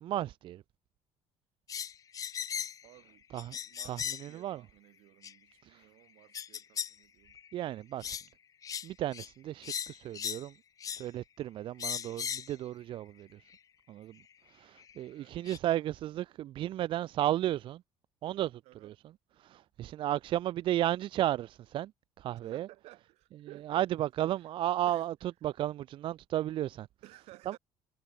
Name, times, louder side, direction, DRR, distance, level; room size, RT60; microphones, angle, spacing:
voice 1, 0.0-0.6 3.3-3.6 3.9-4.6 5.7-5.8 7.5-8.2 8.8-10.5 11.0-13.3 13.9-14.2 14.5-17.8 18.2-18.9 19.4-21.9 22.2-22.7 23.7-25.1 25.4-26.9 27.5-27.6, right 13 dB, 50° right, 0.4 m, -33 dB
sound 1, 1.7-2.9 3.4-4.3 5.2-5.3 6.3-6.9 7.3-7.5 8.0-8.3 8.6-8.9 9.1-9.3 9.6-10.5 10.8-11.1 11.8-12.5 13.5-13.6 14.8-14.9 15.5-15.6, left 8 dB, 35° left, 0.5 m, -37 dB
voice 2, 2.8-3.2 3.6-7.4 15.1-15.4 18.6-18.9 22.4-23.9 24.3-24.5 24.9-25.1 27.0-27.6, right 19 dB, 80° right, 6.8 m, -56 dB
cardioid pair, 130°, 11 cm